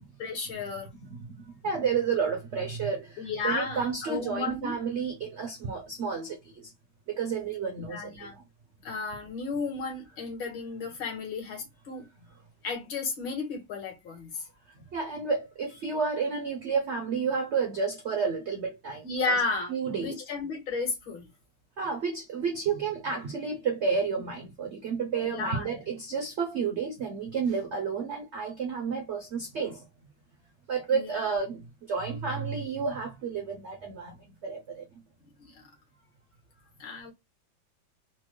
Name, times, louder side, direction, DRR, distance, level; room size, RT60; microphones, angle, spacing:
voice 1, 0.2-0.9 3.2-4.8 7.8-8.4 8.8-12.1 12.6-14.5 19.0-21.3 25.2-25.7 30.9-31.4 35.4-35.6 36.8-37.1, left 4 dB, 80° left, 2.2 m, -33 dB
voice 2, 1.6-6.7 7.1-8.4 14.9-19.4 19.7-20.2 21.8-29.9 30.7-34.2 34.4-34.8, right 5 dB, 75° right, 0.6 m, -31 dB
4.2 x 2.2 x 3.1 m
omnidirectional pair, 2.1 m